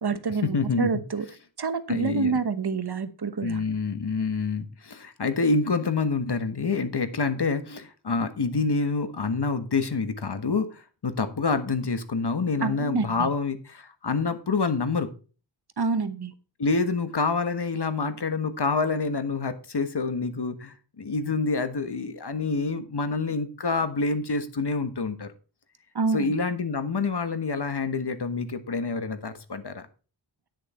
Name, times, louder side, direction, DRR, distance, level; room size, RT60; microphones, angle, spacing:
voice 1, 0.0-1.3 1.6-3.6 12.6-13.3 15.8-16.3 25.9-26.3, right 4 dB, 60° right, 1.1 m, -27 dB
voice 2, 0.5-0.9 1.9-2.4 3.4-15.1 16.6-25.3 26.1-29.9, left 4 dB, 60° left, 1.3 m, -27 dB
10.5 x 6.6 x 4.3 m
wide cardioid pair, 55°, 45 cm